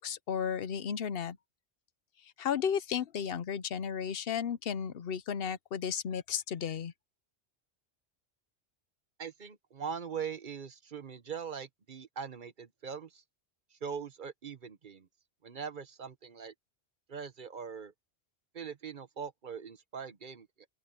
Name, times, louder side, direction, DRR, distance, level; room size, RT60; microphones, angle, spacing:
voice 1, 0.0-1.4 2.2-6.9, left 7 dB, 60° left, 0.9 m, -34 dB
voice 2, 9.2-13.2 13.7-15.1 15.4-16.5 17.1-17.9 18.5-20.5, right 6 dB, 50° right, 1.0 m, -41 dB
open air
omnidirectional pair, 1.2 m